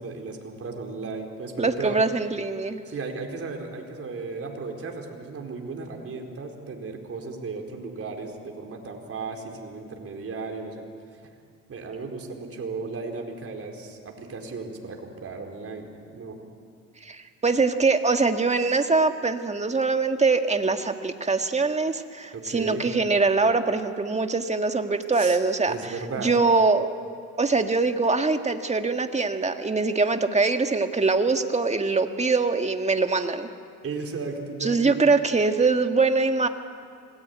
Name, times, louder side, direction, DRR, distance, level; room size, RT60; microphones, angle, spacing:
voice 1, 0.0-2.0 2.9-10.9 11.1-11.2 11.7-16.4 22.3-22.8 25.1-25.4 25.7-26.3 33.8-34.9, right 4 dB, 50° right, 2 dB, 4.4 m, -35 dB
voice 2, 1.6-2.8 17.0-26.9 27.4-33.5 34.6-36.5, right 3 dB, 20° right, 6 dB, 1.8 m, -23 dB
26.5 x 19.0 x 9.5 m, 2.4 s
cardioid pair, 90°, 30 cm